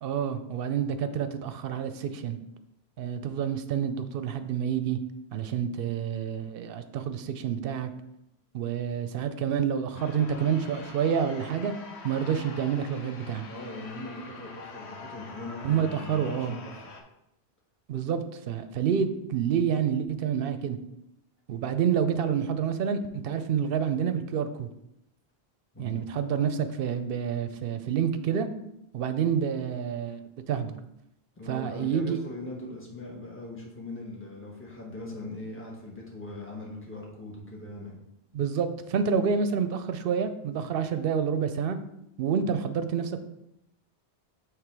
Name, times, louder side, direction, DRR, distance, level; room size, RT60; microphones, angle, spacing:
voice 1, 0.0-2.4 3.0-5.0 5.3-7.9 8.5-11.7 12.0-13.5 15.6-16.6 17.9-18.2 18.5-20.8 21.5-24.7 25.8-28.5 28.9-30.2 30.5-30.7 31.5-32.2 38.3-41.8 42.2-43.2, right 7 dB, 65° right, 10 dB, 0.7 m, -28 dB
sound 1, 9.9-17.0, left 4 dB, 90° left, 1.1 m, -45 dB
voice 2, 13.5-17.0 21.5-21.7 25.7-26.0 31.4-38.0, left 2 dB, 10° left, -2 dB, 1.2 m, -40 dB
6.6 x 3.3 x 4.6 m, 0.83 s
omnidirectional pair, 1.1 m